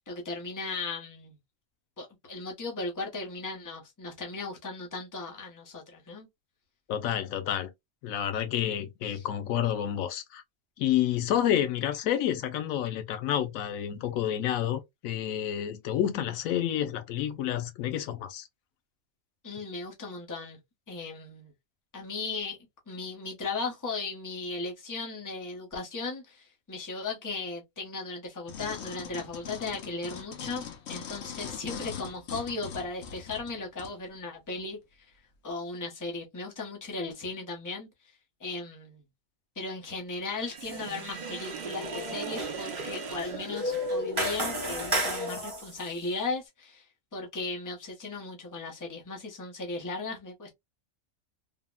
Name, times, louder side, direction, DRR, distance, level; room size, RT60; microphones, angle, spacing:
voice 1, 0.1-1.4 2.0-6.3 9.1-9.2 19.4-20.6 20.9-21.5 21.9-22.6 22.9-34.8 35.4-37.9 38.4-39.0 39.6-46.8 47.1-50.6, left 3 dB, 20° left, 0.7 m, -37 dB
voice 2, 6.9-7.7 8.0-10.4 10.8-18.5, left 10 dB, 90° left, 1.0 m, -29 dB
sound 1, 28.5-34.0 34.5-34.6, left 7 dB, 60° left, 0.9 m, -41 dB
Sink (filling or washing), 40.3-44.3, right 5 dB, 55° right, 0.5 m, -40 dB
sound 2, 40.6-41.0 41.3-45.9, equal, 25° right, 0.9 m, -33 dB
3.4 x 2.1 x 2.2 m
omnidirectional pair, 1.4 m